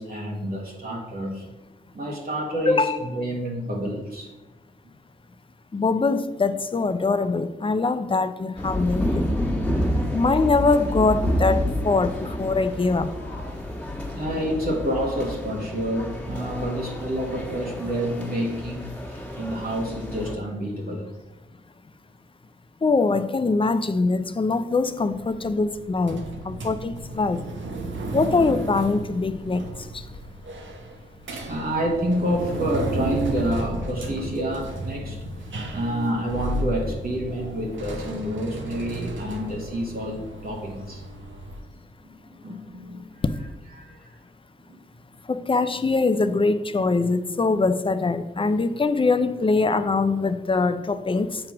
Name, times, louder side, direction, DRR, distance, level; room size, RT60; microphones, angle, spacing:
voice 1, 0.0-1.5 1.9-4.3 9.4-10.1 14.1-21.1 31.3-35.2 35.7-41.0 42.0-43.2 43.7-44.1 44.7-44.8, equal, 50° right, 1.4 m, -29 dB
voice 2, 2.7-3.0 5.7-9.3 10.1-13.1 22.8-27.4 28.1-29.7 45.3-51.4, left 3 dB, 30° left, 0.5 m, -23 dB
sound 1, 8.6-20.3, equal, 5° left, 1.7 m, -29 dB
sound 2, 25.0-41.6, right 1 dB, 80° right, 1.0 m, -33 dB
7.5 x 2.9 x 6.0 m
cardioid pair, 55°, 19 cm